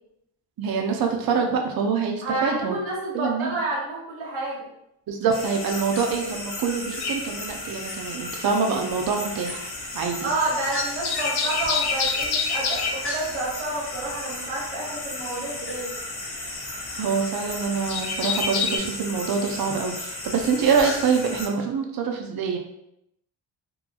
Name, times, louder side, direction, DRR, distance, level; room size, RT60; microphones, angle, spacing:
voice 1, 0.6-2.8 3.1-3.5 5.1-10.3 17.0-22.6, right 5 dB, 50° right, 3 dB, 0.5 m, -25 dB
voice 2, 2.2-4.7 10.2-15.9, right 2 dB, 75° right, -5 dB, 1.0 m, -29 dB
sound 1, 5.3-21.5, left 2 dB, 25° left, 0.8 m, -34 dB
sound 2, 7.0-8.4 8.7-18.8, left 5 dB, 50° left, 0.5 m, -29 dB
2.9 x 2.2 x 2.4 m, 0.80 s
cardioid pair, 55°, 49 cm